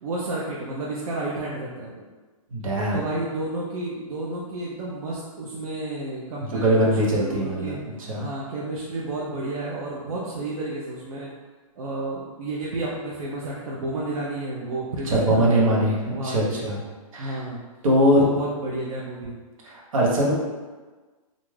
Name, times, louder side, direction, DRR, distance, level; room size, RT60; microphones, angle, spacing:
voice 1, 0.0-2.1 2.9-7.8 8.2-11.3 11.8-15.9 16.1-16.6 17.2-17.6 18.0-19.4, right 2 dB, 85° right, -5 dB, 0.6 m, -31 dB
voice 2, 2.5-3.0 6.5-8.3 15.0-16.8 17.1-17.4 17.8-18.3 19.6-20.3, equal, 70° right, -4 dB, 0.9 m, -22 dB
2.5 x 2.3 x 3.1 m, 1.3 s
hypercardioid pair, 170°, 18 cm